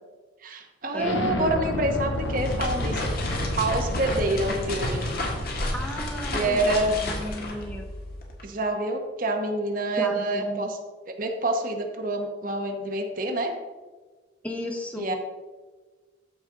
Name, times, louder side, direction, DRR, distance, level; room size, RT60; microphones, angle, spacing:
voice 1, 0.4-3.1 3.6-5.0 6.3-6.9 8.4-10.8 11.1-13.5 15.0-15.2, right 2 dB, 45° right, 4 dB, 1.0 m, -27 dB
voice 2, 0.9-1.7 5.7-7.8 10.0-10.7 14.4-15.2, equal, 5° left, 2 dB, 1.0 m, -34 dB
Explosion, 1.0-6.5, left 1 dB, 80° left, 1.0 m, -31 dB
sound 1, 2.1-8.4, left 1 dB, 50° left, 1.7 m, -32 dB
13.5 x 5.2 x 3.8 m, 1.3 s
head